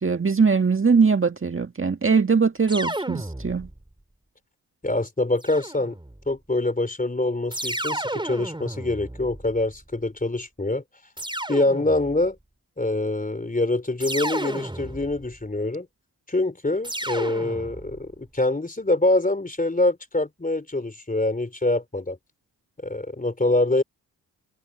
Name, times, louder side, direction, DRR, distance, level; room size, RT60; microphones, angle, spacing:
voice 1, 0.0-3.7, right 5 dB, 30° right, 1.8 m, -21 dB
sound 1, 2.7-3.9 5.4-6.3 7.5-9.8 11.2-12.3 14.0-15.4 16.8-18.1, right 1 dB, 10° right, 4.2 m, -32 dB
voice 2, 4.8-5.9 6.3-10.8 11.5-12.4 12.8-15.9 16.3-22.2 22.8-23.8, left 2 dB, 20° left, 3.7 m, -25 dB
supercardioid pair, 45°, 40 cm